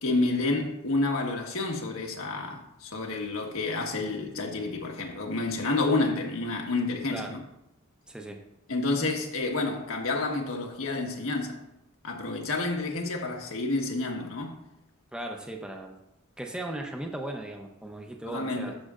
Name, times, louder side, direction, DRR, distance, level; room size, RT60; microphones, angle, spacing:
voice 1, 0.0-7.4 8.7-11.6 12.0-14.6 18.3-18.7, left 2 dB, 85° left, 1.4 m, -29 dB
voice 2, 8.1-8.4 15.1-15.9 16.4-18.8, right 1 dB, 5° right, 0.7 m, -37 dB
13.0 x 6.4 x 2.5 m
head